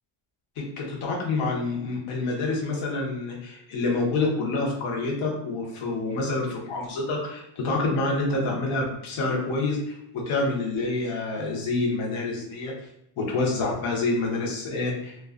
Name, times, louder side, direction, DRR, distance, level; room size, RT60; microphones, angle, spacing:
voice 1, 0.6-12.7 13.2-15.3, left 3 dB, 80° left, -2 dB, 0.9 m, -27 dB
2.3 x 2.3 x 2.3 m, 0.77 s
cardioid pair, 145°, 49 cm